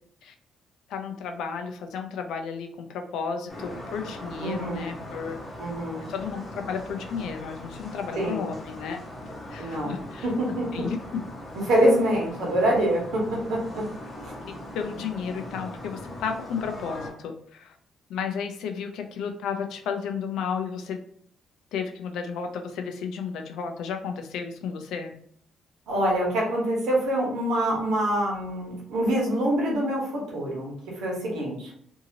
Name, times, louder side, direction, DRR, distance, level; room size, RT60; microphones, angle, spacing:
voice 1, 0.9-5.4 6.1-9.0 9.5-10.3 10.7-11.0 14.7-17.8 18.1-21.0 21.7-25.1, left 6 dB, 80° left, 5 dB, 0.4 m, -33 dB
sound 1, 3.5-17.1, left 1 dB, 25° left, 0.8 m, -40 dB
voice 2, 4.4-4.9 5.6-6.0 8.2-8.5 9.6-9.9 10.2-10.9 11.7-13.8 14.2-14.3 25.9-31.7, right 1 dB, 90° right, -2 dB, 1.2 m, -25 dB
2.7 x 2.7 x 2.8 m, 0.63 s
cardioid pair, 145°, 0 cm